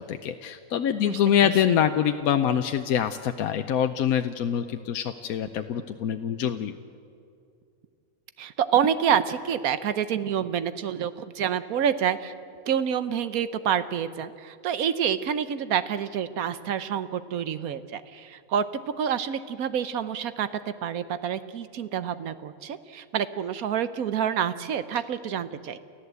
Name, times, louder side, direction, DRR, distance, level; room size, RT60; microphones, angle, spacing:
voice 1, 0.0-6.7, left 9 dB, 85° left, 7 dB, 1.2 m, -25 dB
voice 2, 1.1-1.8 8.4-12.3 12.7-18.6 19.0-20.5 20.8-25.8, right 8 dB, 80° right, 13 dB, 1.3 m, -28 dB
29.5 x 14.5 x 8.1 m, 2.4 s
omnidirectional pair, 1.5 m